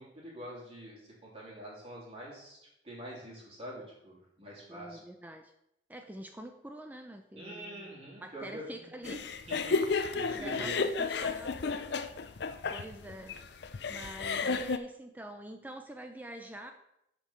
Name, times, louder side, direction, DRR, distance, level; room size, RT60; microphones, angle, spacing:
voice 1, 0.0-2.6 2.8-5.0 7.4-8.9 9.5-10.7, right 1 dB, 30° right, -5 dB, 3.1 m, -45 dB
voice 2, 4.7-5.5 5.9-7.9 8.2-9.3 10.3-12.3 12.7-13.4 13.9-16.7, right 1 dB, 10° right, 5 dB, 0.4 m, -46 dB
sound 1, 9.0-14.8, left 4 dB, 55° left, 0.5 m, -32 dB
8.2 x 5.3 x 5.6 m, 0.82 s
head